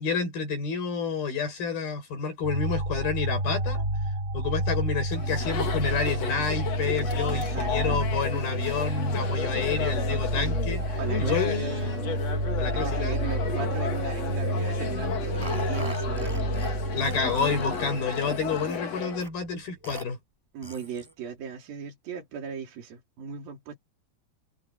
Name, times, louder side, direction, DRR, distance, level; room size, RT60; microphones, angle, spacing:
voice 1, 0.0-3.9 4.3-12.1 12.6-13.2 16.9-20.2, left 5 dB, 75° left, 8.0 m, -29 dB
sound 1, 2.4-18.8, right 1 dB, 15° right, 5.9 m, -30 dB
Chatter, 5.1-19.3, left 6 dB, 50° left, 3.3 m, -34 dB
voice 2, 7.2-8.0 11.0-12.1 12.6-16.9 20.5-23.8, right 6 dB, 70° right, 5.4 m, -38 dB
Burping eructation, 15.4-16.7 17.0-18.8 19.2-19.3 19.8-20.0 20.6-21.2, equal, 5° left, 6.5 m, -43 dB
omnidirectional pair, 4.3 m